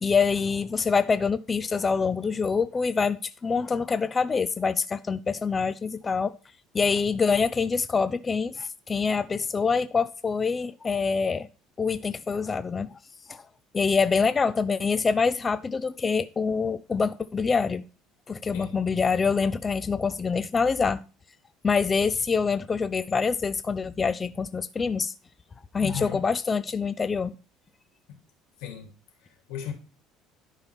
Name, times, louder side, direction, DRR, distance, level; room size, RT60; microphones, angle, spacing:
voice 1, 0.0-6.3 6.7-11.5 11.8-13.0 13.3-13.4 13.7-17.8 18.3-21.0 21.6-25.1 25.7-27.3, left 5 dB, 20° left, 0.3 m, -25 dB
voice 2, 25.8-26.2 28.6-28.9 29.2-29.7, left 9 dB, 85° left, 2.8 m, -36 dB
11.5 x 5.7 x 3.4 m
cardioid pair, 155°, 0 cm